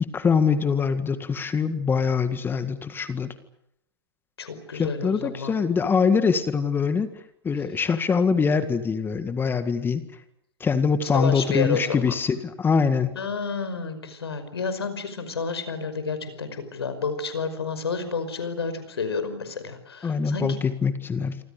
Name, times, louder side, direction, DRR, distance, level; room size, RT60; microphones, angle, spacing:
voice 1, 0.1-3.3 4.7-7.1 7.4-10.0 10.6-13.2 20.0-21.4, left 5 dB, 15° left, 11 dB, 1.9 m, -23 dB
voice 2, 4.4-5.5 11.0-12.2 13.2-20.6, left 5 dB, 80° left, 11 dB, 5.4 m, -30 dB
28.0 x 25.5 x 6.7 m, 0.77 s
hypercardioid pair, 110°, 13 cm